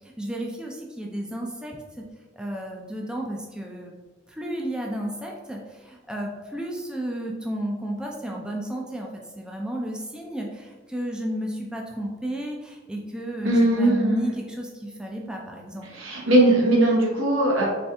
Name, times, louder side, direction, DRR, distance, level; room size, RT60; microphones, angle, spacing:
voice 1, 0.2-2.0 2.4-3.9 4.3-9.1 9.4-15.9, right 1 dB, 5° right, -1 dB, 0.4 m, -32 dB
voice 2, 13.4-14.3 15.9-17.7, right 1 dB, 90° right, -2 dB, 1.1 m, -19 dB
4.2 x 3.2 x 3.4 m, 1.3 s
head